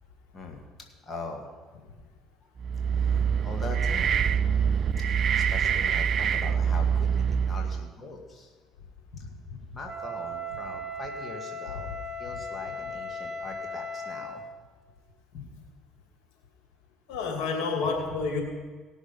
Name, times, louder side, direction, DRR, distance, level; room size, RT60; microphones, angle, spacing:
voice 1, 1.0-1.5 3.0-4.1 5.4-8.5 9.7-11.9 12.2-14.4, left 3 dB, 30° left, 1 dB, 2.1 m, -41 dB
sound 1, 2.6-7.9, right 7 dB, 50° right, 0.4 m, -25 dB
Wind instrument woodwind instrument, 9.9-14.5, left 1 dB, 20° right, 2.0 m, -37 dB
voice 2, 17.1-18.4, left 4 dB, 75° left, 2 dB, 2.5 m, -29 dB
18.0 x 6.4 x 5.3 m, 1.4 s
supercardioid pair, 75°, 0 cm